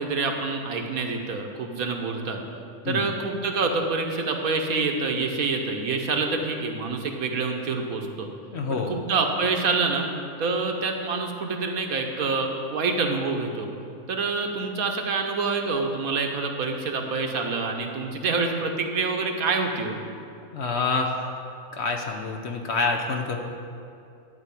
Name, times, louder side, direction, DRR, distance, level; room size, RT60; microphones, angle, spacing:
voice 1, 0.0-2.4 2.9-8.3 8.9-10.1 10.4-13.7 14.1-20.0, right 4 dB, 70° right, 3 dB, 1.4 m, -26 dB
voice 2, 8.5-8.9 20.5-21.3 21.7-23.4, left 4 dB, 55° left, 2 dB, 0.9 m, -27 dB
11.5 x 4.6 x 8.3 m, 2.6 s
omnidirectional pair, 1.6 m